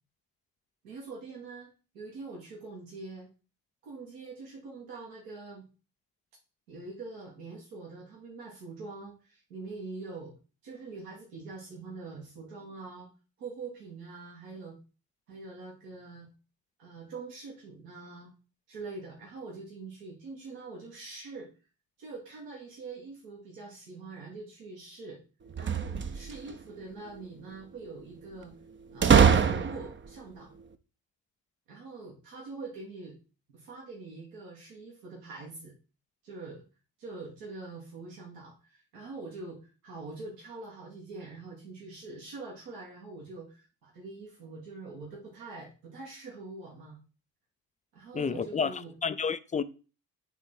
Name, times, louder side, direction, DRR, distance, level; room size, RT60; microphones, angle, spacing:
voice 1, 0.8-1.7 1.9-3.3 3.8-5.6 6.7-10.3 10.6-13.1 13.4-14.7 15.3-16.3 16.8-18.3 18.7-21.5 22.0-25.2 25.6-28.5 28.9-30.5 31.7-33.2 33.5-35.7 36.2-36.6 37.0-47.0 47.9-48.9, right 3 dB, 70° right, 2.0 m, -44 dB
sound 1, 25.5-26.5 29.0-30.1, right 6 dB, 25° right, 0.7 m, -22 dB
voice 2, 48.1-49.6, left 6 dB, 15° left, 0.4 m, -30 dB
8.2 x 3.7 x 4.4 m
figure-of-eight pair, 50°, 49 cm